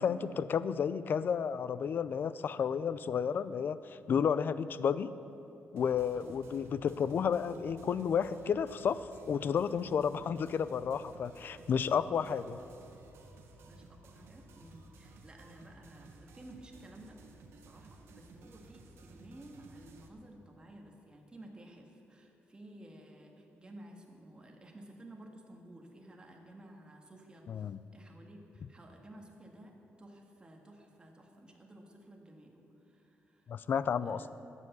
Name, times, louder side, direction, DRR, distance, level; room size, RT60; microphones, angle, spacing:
voice 1, 0.0-5.1 5.7-12.6 27.5-27.8 33.5-34.3, left 7 dB, 50° left, 15 dB, 0.4 m, -32 dB
sound 1, 5.8-20.1, right 3 dB, 80° right, 1.3 m, -56 dB
voice 2, 6.1-6.4 11.9-12.5 13.7-17.2 17.5-33.5 34.0-34.3, right 1 dB, 20° right, 1 dB, 1.7 m, -54 dB
12.0 x 8.2 x 8.2 m, 2.8 s
cardioid pair, 130°, 4 cm